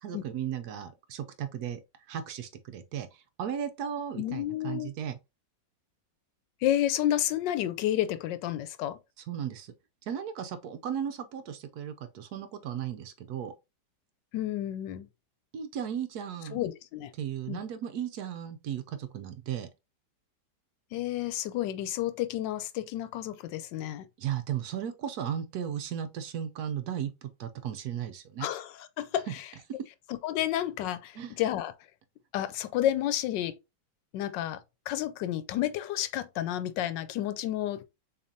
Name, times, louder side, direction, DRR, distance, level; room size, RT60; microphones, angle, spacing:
voice 1, 0.0-1.8 2.1-5.2 9.3-9.7 10.1-13.5 15.5-16.6 17.2-19.7 24.2-28.5 31.2-31.3, right 9 dB, 70° right, 1.0 m, -35 dB
voice 2, 4.2-4.9 6.6-9.0 14.3-15.1 16.5-17.1 17.5-17.6 20.9-24.1 28.4-29.4 30.1-31.7 32.3-33.6 34.1-34.6 34.9-37.9, left 12 dB, 85° left, 1.3 m, -31 dB
6.6 x 2.9 x 2.7 m
omnidirectional pair, 1.9 m